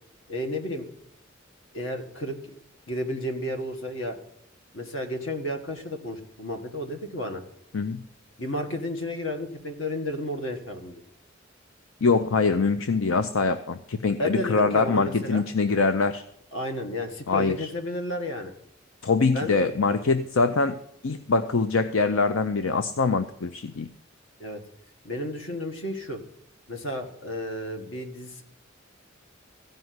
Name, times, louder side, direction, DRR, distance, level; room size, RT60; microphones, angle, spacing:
voice 1, 0.3-0.9 1.7-2.4 2.9-4.2 4.7-7.4 8.4-11.0 14.2-15.4 16.5-18.5 19.3-19.6 24.4-24.6 25.0-26.2 26.7-28.4, left 1 dB, 70° left, 5 dB, 1.8 m, -32 dB
voice 2, 12.0-16.2 17.3-17.7 19.0-20.8 21.0-23.9, left 4 dB, 90° left, 10 dB, 0.6 m, -23 dB
15.0 x 5.4 x 9.5 m, 0.76 s
head